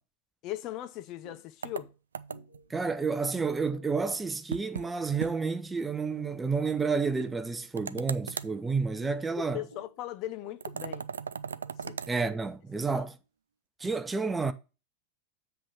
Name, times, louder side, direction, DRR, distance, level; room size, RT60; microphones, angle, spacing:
voice 1, 0.4-1.9 9.4-11.1 11.8-12.0 12.8-13.1, left 14 dB, 40° left, 0.4 m, -39 dB
sound 1, 1.2-1.4 1.8-1.9 2.3-12.5, left 1 dB, 85° left, 0.9 m, -55 dB
sound 2, 1.6-2.7 4.5-4.9 5.2-5.3 5.7-5.8 7.8-8.6 10.6-12.1, right 6 dB, 70° right, 0.3 m, -37 dB
voice 2, 2.7-9.6 12.1-13.2 13.8-14.5, right 4 dB, 10° right, 0.6 m, -30 dB
7.5 x 3.4 x 6.0 m
figure-of-eight pair, 90°, 0 cm